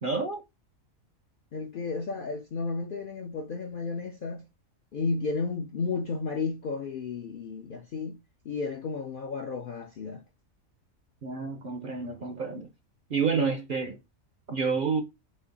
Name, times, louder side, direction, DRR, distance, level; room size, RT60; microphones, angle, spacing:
voice 1, 0.0-0.4 11.2-12.7 13.1-14.0 14.5-15.0, right 5 dB, 55° right, 0.6 m, -29 dB
voice 2, 1.5-4.5 4.9-10.2, left 4 dB, 60° left, 0.5 m, -33 dB
4.2 x 2.8 x 3.9 m
omnidirectional pair, 1.4 m